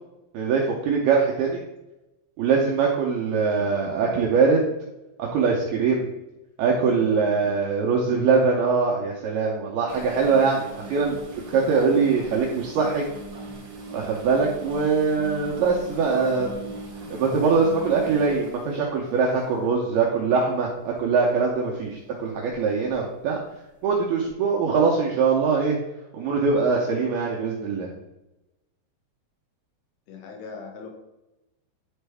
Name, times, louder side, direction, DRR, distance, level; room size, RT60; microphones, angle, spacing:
voice 1, 0.3-1.6 2.4-4.7 5.2-6.1 6.6-11.2 11.5-13.0 13.9-16.5 17.1-23.4 23.8-25.8 26.1-27.9, right 5 dB, 80° right, -1 dB, 2.2 m, -22 dB
voice 2, 3.6-4.2 6.7-7.5 15.9-16.6 30.1-30.9, left 4 dB, 85° left, 0 dB, 4.0 m, -39 dB
sound 1, 9.9-20.0 20.7-21.0 21.5-21.7 22.5-22.9 23.2-23.3 24.2-24.3, right 2 dB, 65° right, 2.0 m, -40 dB
10.5 x 4.5 x 3.4 m, 0.97 s
omnidirectional pair, 5.5 m